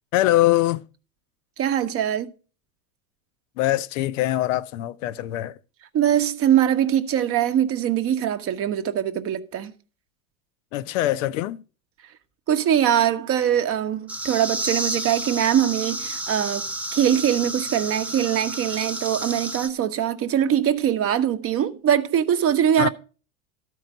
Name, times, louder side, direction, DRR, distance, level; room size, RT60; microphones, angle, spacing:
voice 1, 0.1-0.8 3.6-5.6 10.7-11.6 22.8-22.9, left 15 dB, 65° left, 0.6 m, -23 dB
voice 2, 1.6-2.3 5.9-9.7 12.5-16.6 16.9-22.9, right 10 dB, 30° right, 0.8 m, -22 dB
sound 1, 14.1-19.7, right 1 dB, 5° right, 0.5 m, -31 dB
12.5 x 4.6 x 5.2 m
hypercardioid pair, 105°, 43 cm